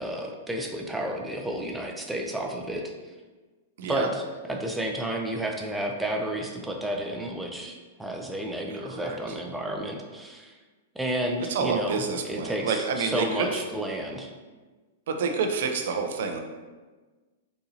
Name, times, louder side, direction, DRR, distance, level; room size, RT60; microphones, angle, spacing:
voice 1, 0.0-2.9 3.9-4.2 4.5-10.5 11.0-14.3, right 1 dB, 5° right, 1 dB, 0.4 m, -31 dB
voice 2, 3.8-4.1 8.7-9.4 11.5-13.6 15.1-16.4, right 5 dB, 65° right, 4 dB, 0.4 m, -28 dB
3.9 x 2.7 x 2.7 m, 1.3 s
hypercardioid pair, 115°, 0 cm